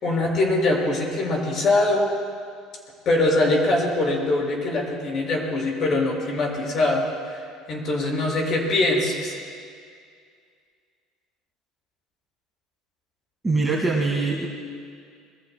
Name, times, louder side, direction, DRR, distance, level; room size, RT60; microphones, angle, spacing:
voice 1, 0.0-2.1 3.1-7.0 7.3-7.4 7.7-9.4, left 2 dB, 35° left, -2 dB, 5.6 m, -22 dB
voice 2, 13.4-14.5, right 3 dB, 10° right, -3 dB, 1.8 m, -23 dB
27.0 x 23.5 x 2.2 m, 2.2 s
cardioid pair, 155°, 0 cm